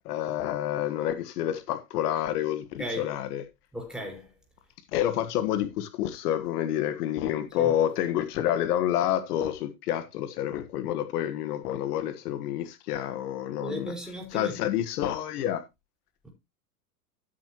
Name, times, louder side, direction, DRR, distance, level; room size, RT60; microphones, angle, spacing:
voice 1, 0.0-3.4 4.9-13.9 14.3-15.6, left 11 dB, 65° left, 1.5 m, -28 dB
voice 2, 3.7-4.3 7.5-7.7 13.6-14.6 16.2-16.3, equal, ahead, 4.9 m, -36 dB
13.5 x 7.8 x 3.0 m
hypercardioid pair, 120°, 49 cm